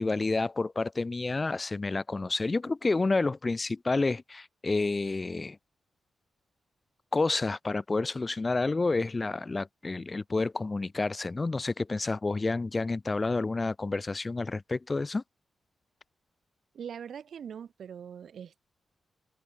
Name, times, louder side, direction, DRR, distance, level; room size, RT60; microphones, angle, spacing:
voice 1, 0.0-5.6 7.1-15.2, left 3 dB, 20° left, 0.5 m, -29 dB
voice 2, 16.7-18.6, right 8 dB, 65° right, 4.4 m, -42 dB
wide cardioid pair, 160°, 0 cm